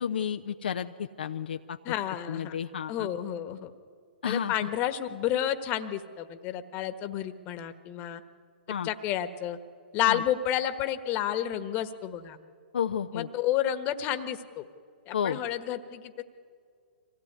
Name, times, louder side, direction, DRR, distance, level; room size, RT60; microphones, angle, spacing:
voice 1, 0.0-1.8 2.3-3.1 4.2-4.5 8.7-8.9 10.1-10.2 12.7-13.3 15.1-15.4, left 8 dB, 70° left, 6 dB, 0.8 m, -31 dB
voice 2, 1.8-2.6 2.9-3.7 4.2-8.2 8.8-9.6 9.9-12.4 13.1-14.6 15.1-16.2, left 11 dB, 35° left, 10 dB, 1.5 m, -30 dB
25.0 x 17.5 x 9.5 m, 2.2 s
hypercardioid pair, 120°, 6 cm